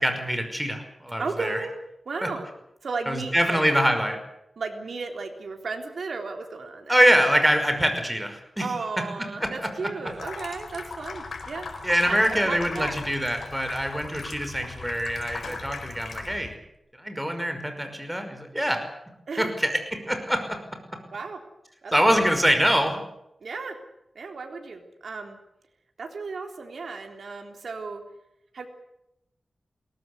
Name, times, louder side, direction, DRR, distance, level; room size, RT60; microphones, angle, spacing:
voice 1, 0.0-1.6 2.2-2.3 3.1-4.2 6.9-8.6 9.4-9.7 11.8-16.5 17.0-18.8 19.4-19.8 20.1-20.6 21.9-23.0, equal, 5° right, 6 dB, 5.6 m, -24 dB
voice 2, 1.2-1.7 2.1-2.5 2.8-3.6 4.6-7.0 8.6-11.7 12.1-12.2 12.4-13.0 19.3-19.5 21.1-21.4 21.8-22.3 23.4-23.8 24.2-25.4 26.0-28.0 28.5-28.7, right 4 dB, 80° right, 4 dB, 3.6 m, -34 dB
Water tap faucet / Sink (filling or washing), 10.1-16.5, left 4 dB, 80° left, 4.5 m, -38 dB
22.0 x 18.5 x 8.3 m, 0.83 s
wide cardioid pair, 75°, 0 cm